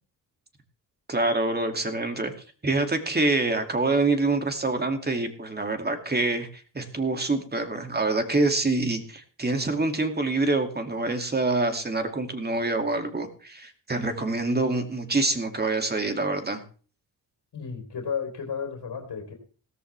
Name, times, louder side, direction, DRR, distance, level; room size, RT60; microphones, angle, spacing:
voice 1, 1.1-2.3 2.6-16.6, right 2 dB, 25° right, 6 dB, 2.5 m, -26 dB
voice 2, 17.5-19.3, left 6 dB, 60° left, 1 dB, 4.0 m, -33 dB
17.0 x 14.0 x 3.4 m, 0.39 s
cardioid pair, 95°, 40 cm